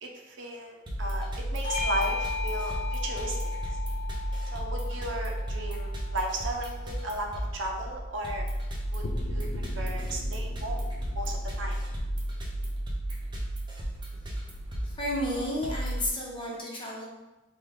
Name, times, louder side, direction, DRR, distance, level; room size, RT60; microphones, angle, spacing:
voice 1, 0.0-3.8 4.5-8.5 8.9-9.5 9.8-10.8 11.1-11.7, right 1 dB, 70° right, 2 dB, 0.6 m, -35 dB
sound 1, 0.9-16.1, right 1 dB, 25° right, 0.6 m, -33 dB
Bell / Doorbell, 1.6-6.5, left 5 dB, 60° left, 0.9 m, -36 dB
sound 2, 9.0-12.7, left 1 dB, 75° left, 0.5 m, -41 dB
voice 2, 14.8-17.1, equal, 25° left, -4 dB, 0.9 m, -32 dB
5.4 x 2.3 x 3.2 m, 1.1 s
head